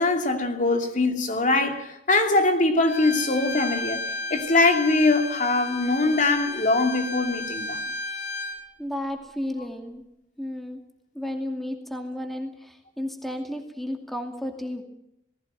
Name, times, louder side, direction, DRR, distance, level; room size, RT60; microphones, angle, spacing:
voice 1, 0.0-4.0 4.3-7.8, left 2 dB, 45° left, 2.7 m, -22 dB
Bowed string instrument, 2.9-8.6, left 2 dB, 90° left, 5.3 m, -33 dB
voice 2, 8.8-10.0 10.4-10.8 11.1-14.8, left 1 dB, ahead, 2.5 m, -33 dB
19.0 x 16.5 x 9.0 m
head